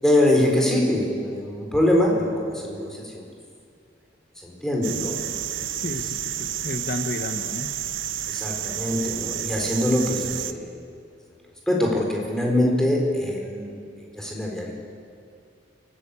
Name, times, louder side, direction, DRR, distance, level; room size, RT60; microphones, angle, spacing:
voice 1, 0.0-3.2 4.4-5.2 5.7-5.9 6.4-6.6 8.3-10.8 11.7-13.7 14.0-14.7, left 1 dB, 5° left, -1 dB, 4.2 m, -23 dB
sound 1, 4.8-10.5, right 11 dB, 85° right, 0.9 m, -30 dB
voice 2, 5.7-7.7, left 2 dB, 55° left, 6 dB, 1.0 m, -32 dB
28.5 x 14.5 x 8.4 m, 2.3 s
head